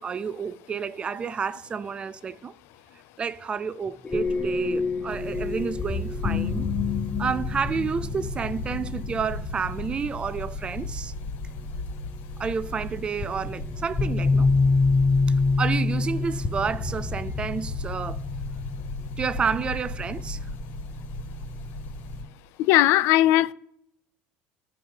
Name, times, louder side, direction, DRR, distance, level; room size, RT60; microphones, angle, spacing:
voice 1, 0.0-2.5 3.2-6.7 7.2-11.1 12.4-14.5 15.6-18.2 19.2-20.4, right 6 dB, 25° right, 0.4 m, -30 dB
sound 1, 4.0-10.9 12.6-12.7 13.2-20.3, left 4 dB, 15° left, 0.9 m, -27 dB
sound 2, 5.1-22.2, left 1 dB, 45° left, 3.7 m, -36 dB
voice 2, 22.6-23.5, left 15 dB, 65° left, 0.5 m, -18 dB
13.0 x 4.8 x 9.0 m
cardioid pair, 145°, 4 cm